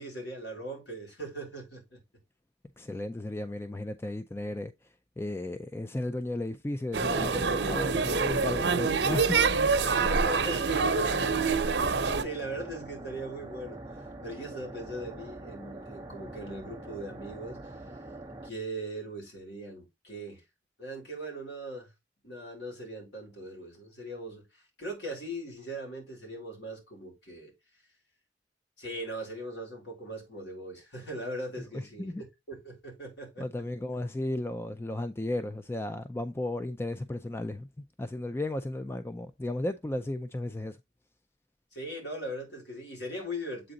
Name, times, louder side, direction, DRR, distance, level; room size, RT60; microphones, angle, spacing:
voice 1, 0.0-2.0 10.0-11.3 12.0-13.8 14.2-17.8 18.4-20.4 20.8-21.9 22.2-27.5 28.8-32.1 32.5-33.5 41.7-43.7, right 1 dB, 70° left, 3.6 m, -40 dB
voice 2, 2.8-4.7 5.2-9.4 32.0-32.2 33.4-37.7 38.0-40.8, left 1 dB, 15° left, 0.3 m, -34 dB
sound 1, 6.9-12.2, right 4 dB, 70° right, 0.9 m, -26 dB
sound 2, 9.7-18.5, right 2 dB, 15° right, 0.7 m, -44 dB
7.8 x 3.7 x 3.9 m
head